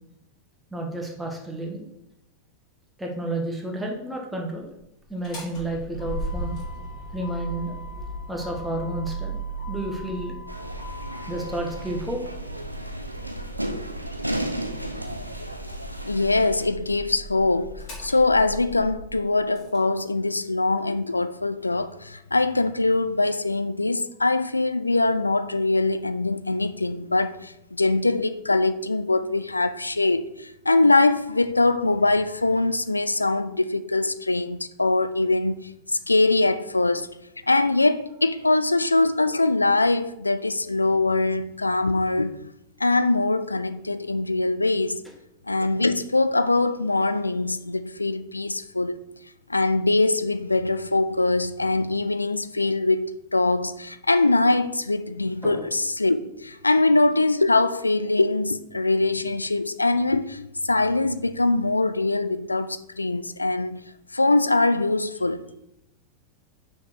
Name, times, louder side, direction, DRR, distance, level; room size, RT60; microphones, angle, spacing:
voice 1, 0.7-1.8 3.0-4.7 5.1-6.6 7.1-7.7 8.3-9.4 9.7-10.4 11.3-12.2 55.4-55.6, right 1 dB, 5° right, 1.4 m, -31 dB
Motor vehicle (road), 5.1-19.8, right 1 dB, 40° left, 2.6 m, -37 dB
sound 1, 10.5-16.7, right 1 dB, 90° right, 0.5 m, -34 dB
voice 2, 16.0-37.1 37.5-42.4 42.8-45.0 45.5-49.0 49.5-63.8 64.1-65.5, left 2 dB, 80° left, 0.3 m, -23 dB
5.9 x 4.4 x 4.5 m
figure-of-eight pair, 90°, 0 cm